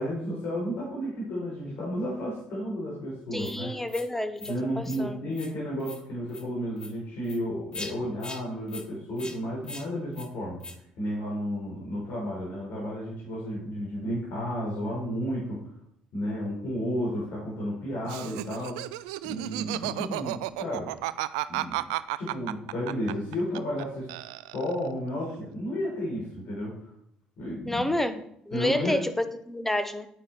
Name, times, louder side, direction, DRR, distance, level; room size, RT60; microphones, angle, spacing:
voice 1, 0.0-3.7 4.5-10.6 11.0-15.6 16.1-18.8 19.2-21.0 21.5-21.8 22.2-24.2 24.5-26.8 27.4-27.8 28.5-29.0, equal, 65° left, -6 dB, 5.2 m, -32 dB
voice 2, 3.3-5.2 27.7-30.1, left 1 dB, 10° left, 10 dB, 1.3 m, -29 dB
sound 1, 3.4-3.6 3.9-4.1 4.4-4.6 4.8-5.0 5.3-5.5 5.8-6.0 6.3-6.4 6.8-6.9 7.2-7.4 7.7-7.9 8.2-8.4 8.7-8.9 9.2-9.4 9.6-9.9 10.1-10.3 10.6-10.8, left 3 dB, 25° left, 1.5 m, -41 dB
Laughter, 18.0-23.8 24.1-24.9, right 17 dB, 80° right, 0.4 m, -33 dB
9.2 x 9.1 x 4.7 m, 0.71 s
hypercardioid pair, 55°, 3 cm